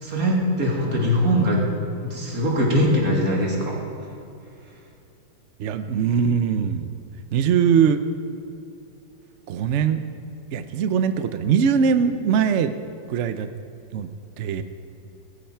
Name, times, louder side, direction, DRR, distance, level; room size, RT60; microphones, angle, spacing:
voice 1, 0.0-1.6 2.0-3.8, equal, 50° right, -2 dB, 3.0 m, -21 dB
voice 2, 5.6-7.0 7.3-8.0 9.5-10.0 10.5-12.7 13.1-13.5 13.9-14.1 14.4-14.6, right 7 dB, 75° right, 10 dB, 0.6 m, -21 dB
16.0 x 13.5 x 4.5 m, 2.7 s
omnidirectional pair, 2.1 m